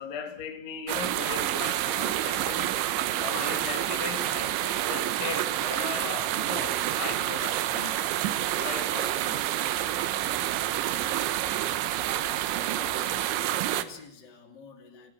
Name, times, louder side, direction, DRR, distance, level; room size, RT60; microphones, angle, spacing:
voice 1, 0.0-2.8 3.2-8.1 8.6-9.5, left 7 dB, 90° left, 5.1 m, -38 dB
sound 1, 0.9-13.8, right 13 dB, 85° right, 3.5 m, -28 dB
voice 2, 12.7-15.1, left 5 dB, 25° left, 3.1 m, -47 dB
30.0 x 17.0 x 6.1 m
omnidirectional pair, 5.1 m